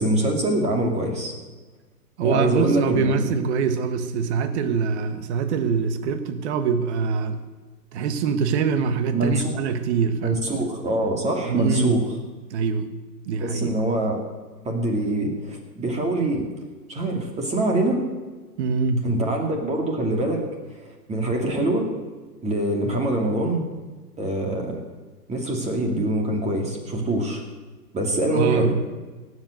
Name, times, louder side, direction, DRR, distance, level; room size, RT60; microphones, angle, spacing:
voice 1, 0.0-1.3 2.2-3.3 9.1-9.6 10.2-12.0 13.4-14.2 14.6-16.5 16.9-18.0 19.0-20.4 20.7-21.9 22.4-23.7 24.2-24.8 25.3-27.4 27.9-28.7, right 1 dB, 15° right, 2 dB, 2.6 m, -24 dB
voice 2, 2.2-7.4 7.9-10.4 11.4-11.9 12.5-12.9 13.3-13.7 18.6-19.1 28.3-28.7, right 5 dB, 45° right, 10 dB, 1.5 m, -24 dB
17.5 x 8.1 x 7.9 m, 1.3 s
hypercardioid pair, 130°, 49 cm